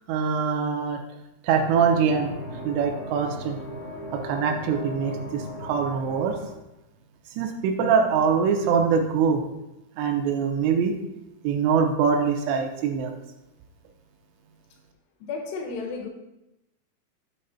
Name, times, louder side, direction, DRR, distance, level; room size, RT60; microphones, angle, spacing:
voice 1, 0.1-1.0 1.4-2.3 2.6-3.6 4.1-6.4 7.4-9.4 10.0-10.9 11.4-13.1, right 6 dB, 80° right, 4 dB, 2.7 m, -23 dB
sound 1, 1.5-6.5, equal, 65° right, 0.7 m, -37 dB
voice 2, 15.2-16.1, left 4 dB, 75° left, 1 dB, 2.8 m, -32 dB
7.8 x 3.1 x 5.6 m, 0.93 s
omnidirectional pair, 5.2 m